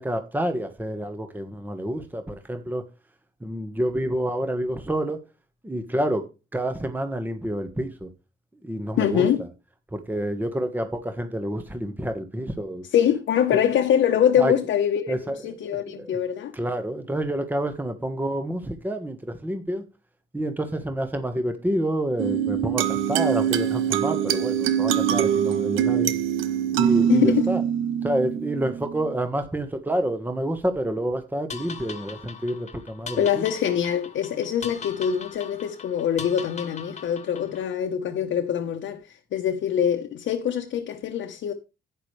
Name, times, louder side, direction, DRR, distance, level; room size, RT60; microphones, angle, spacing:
voice 1, 0.0-2.8 3.4-5.2 5.6-6.2 6.5-8.1 8.6-9.5 9.9-12.8 14.4-14.5 15.1-15.5 15.9-16.2 16.5-19.8 20.3-26.1 26.7-27.6 28.0-33.4, right 1 dB, 10° right, 1.4 m, -28 dB
voice 2, 9.0-9.4 12.9-15.1 15.4-16.5 27.1-27.5 33.2-41.5, left 9 dB, 70° left, 1.1 m, -24 dB
sound 1, 22.2-29.2, right 9 dB, 85° right, 1.0 m, -23 dB
sound 2, 31.5-37.7, left 6 dB, 35° left, 1.6 m, -40 dB
11.5 x 9.0 x 3.3 m
cardioid pair, 90°, 20 cm